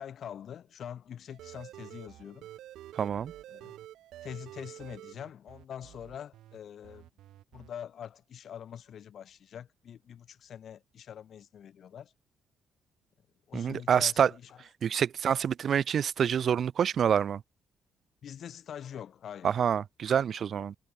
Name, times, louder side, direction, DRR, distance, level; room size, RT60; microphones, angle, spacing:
voice 1, 0.0-2.5 3.5-3.8 4.2-7.1 7.5-12.1 13.5-14.6 18.2-19.6, left 9 dB, 60° left, 2.8 m, -44 dB
sound 1, 1.3-6.6 6.8-7.7, right 13 dB, 85° right, 4.1 m, -49 dB
voice 2, 3.0-3.3 13.5-14.3 14.8-17.4 19.4-20.7, right 8 dB, 55° right, 0.6 m, -27 dB
cardioid pair, 90°, 0 cm